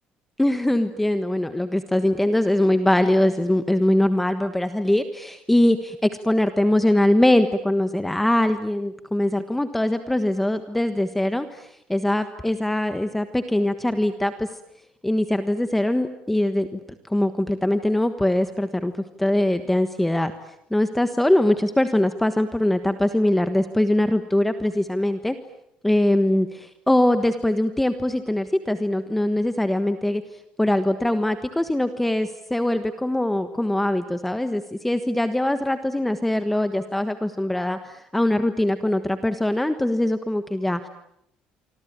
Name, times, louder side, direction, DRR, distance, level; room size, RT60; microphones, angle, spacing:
voice 1, 0.4-14.5 15.0-16.8 17.1-18.9 19.2-20.3 20.7-25.4 25.8-30.2 30.6-40.9, left 1 dB, 5° left, 9 dB, 1.3 m, -22 dB
26.0 x 26.0 x 8.9 m, 0.77 s
cardioid pair, 140°, 3 cm